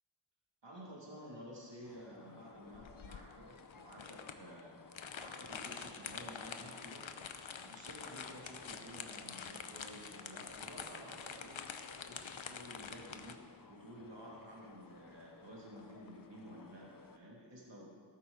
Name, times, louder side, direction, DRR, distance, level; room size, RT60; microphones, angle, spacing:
voice 1, 0.6-4.8 5.1-7.1 7.6-11.6 12.1-13.4 13.7-17.9, equal, 65° right, -4 dB, 2.6 m, -52 dB
sound 1, 1.8-17.2, left 4 dB, 45° left, 0.8 m, -58 dB
sound 2, 2.7-13.4, left 6 dB, 85° left, 0.8 m, -47 dB
14.0 x 13.0 x 4.0 m, 2.1 s
wide cardioid pair, 50°, 46 cm